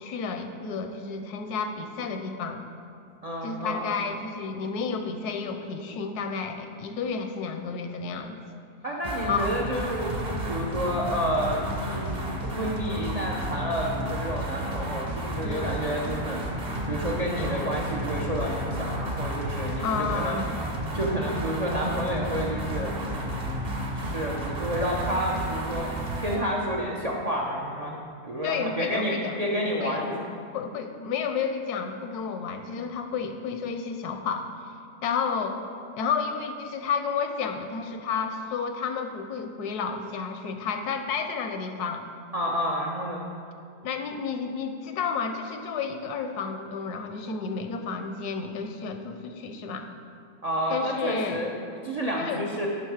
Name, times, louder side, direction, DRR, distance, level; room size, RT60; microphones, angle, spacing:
voice 1, 0.0-2.6 3.4-8.4 9.3-9.5 15.4-15.7 19.8-20.6 28.4-29.4 29.8-30.0 30.5-34.5 35.0-35.6 36.0-42.1 43.8-49.9 50.7-51.4 52.2-52.4, left 5 dB, 80° left, 6 dB, 1.1 m, -31 dB
voice 2, 3.2-3.9 8.8-16.4 16.8-20.4 20.9-23.6 24.0-30.4 42.3-43.2 50.4-51.6 51.8-52.7, equal, 85° right, -2 dB, 0.3 m, -30 dB
sound 1, 9.0-26.4, right 1 dB, 40° right, 0.7 m, -32 dB
10.5 x 3.7 x 4.7 m, 2.5 s
omnidirectional pair, 1.7 m